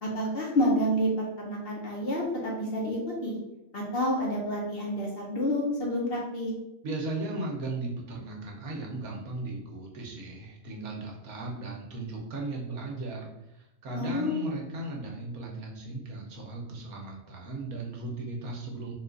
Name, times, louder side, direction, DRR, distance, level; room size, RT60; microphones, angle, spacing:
voice 1, 0.0-1.1 1.4-3.4 3.7-6.5 13.9-14.3, equal, 50° left, -2 dB, 0.9 m, -29 dB
voice 2, 6.8-18.9, right 2 dB, 85° right, -1 dB, 1.4 m, -37 dB
4.1 x 2.4 x 3.8 m, 0.88 s
omnidirectional pair, 1.5 m